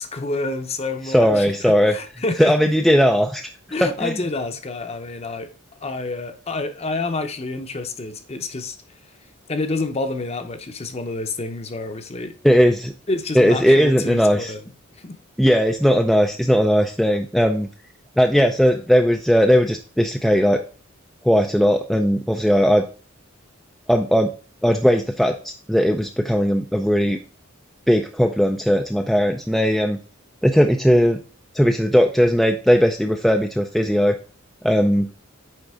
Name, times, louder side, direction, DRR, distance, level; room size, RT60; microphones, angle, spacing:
voice 1, 0.0-2.7 3.7-5.5 5.8-8.8 9.5-12.3 13.1-14.7 14.9-15.2, left 2 dB, 30° left, 0.7 m, -28 dB
voice 2, 1.1-2.0 2.4-3.4 3.8-4.1 12.4-12.9 13.4-14.5 15.4-17.7 18.2-20.6 21.2-22.8 23.9-24.3 24.6-27.2 27.9-30.0 30.4-31.2 31.5-34.2 34.6-35.1, equal, ahead, 0.3 m, -18 dB
9.0 x 3.6 x 3.5 m
head